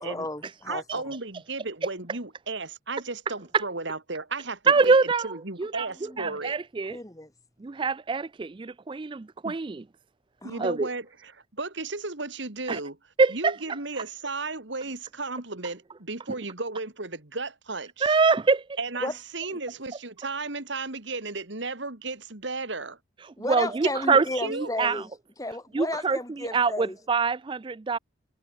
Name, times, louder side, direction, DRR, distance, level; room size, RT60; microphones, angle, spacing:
voice 1, 0.0-1.0 6.1-6.4 6.9-7.3 10.4-10.6 19.0-19.1 19.5-19.6 23.4-25.1 25.4-27.0, left 1 dB, 15° left, 2.0 m, -33 dB
voice 2, 0.7-5.0 5.2-6.5 9.4-9.6 10.4-13.0 13.3-18.2 18.8-23.0 24.1-24.7, right 3 dB, 60° right, 2.4 m, -34 dB
voice 3, 4.7-5.3 5.6-5.9 6.2-7.0 7.6-9.8 10.6-10.9 12.7-12.8 13.2-13.6 18.0-18.6 23.2-24.3 24.5-25.0 25.7-28.0, right 4 dB, 25° right, 0.3 m, -24 dB
head